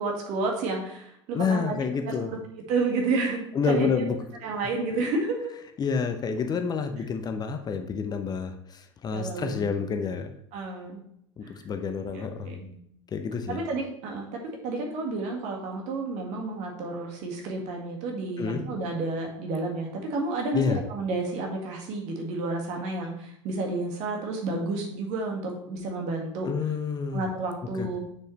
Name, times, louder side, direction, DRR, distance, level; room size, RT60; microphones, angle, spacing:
voice 1, 0.0-2.4 2.7-4.1 4.4-5.5 9.1-9.7 10.5-11.0 11.4-11.5 12.1-12.8 13.5-26.5 27.1-28.0, right 3 dB, 50° right, 1 dB, 1.9 m, -31 dB
voice 2, 1.3-2.4 3.5-4.2 5.8-10.3 11.4-12.6 13.1-13.6 18.4-18.7 20.5-20.8 26.4-27.2 27.7-28.0, left 5 dB, 25° left, 7 dB, 0.7 m, -29 dB
7.3 x 6.5 x 3.2 m, 0.72 s
figure-of-eight pair, 75°, 16 cm